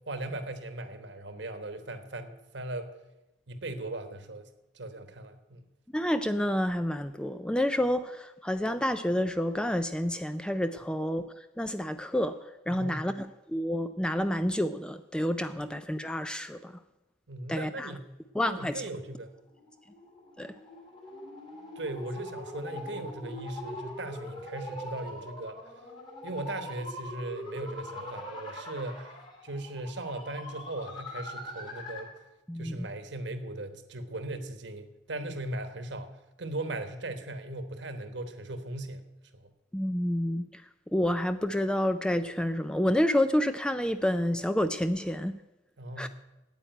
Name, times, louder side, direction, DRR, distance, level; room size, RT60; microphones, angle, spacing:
voice 1, 0.1-2.9 3.5-4.5 4.7-5.7 12.7-13.0 17.3-18.1 18.4-19.3 21.8-25.6 26.2-29.2 29.4-32.1 32.5-36.1 36.4-39.0 39.3-39.5 45.8-46.1, right 2 dB, 65° right, 9 dB, 1.2 m, -38 dB
voice 2, 5.9-12.4 12.7-13.1 13.5-16.8 17.5-17.9 18.3-18.8 20.4-20.5 32.5-32.9 39.7-40.6 40.9-45.3 46.0-46.1, left 1 dB, 5° left, 10 dB, 0.3 m, -29 dB
sound 1, 19.5-32.2, left 1 dB, 25° left, 2.1 m, -42 dB
8.9 x 8.7 x 9.1 m, 0.99 s
head